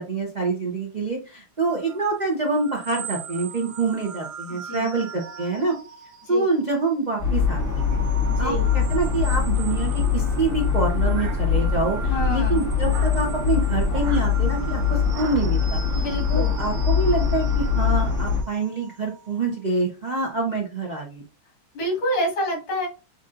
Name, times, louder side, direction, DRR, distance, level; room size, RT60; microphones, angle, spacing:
voice 1, 0.0-5.8 6.3-8.0 8.4-15.8 16.3-21.2, right 3 dB, 50° right, -1 dB, 0.5 m, -26 dB
sound 1, 1.7-6.9 7.3-19.6, right 6 dB, 85° right, 1.6 m, -41 dB
voice 2, 4.5-4.9 6.2-6.5 8.3-8.7 12.0-12.6 15.9-16.5 21.7-22.9, equal, 80° left, -1 dB, 2.7 m, -28 dB
sound 2, 7.2-18.4, left 6 dB, 10° left, 1.1 m, -23 dB
sound 3, 11.1-11.9 12.8-13.2 13.9-14.3 15.1-15.6, right 5 dB, 70° right, 0.8 m, -39 dB
7.0 x 2.7 x 2.5 m, 0.31 s
omnidirectional pair, 2.3 m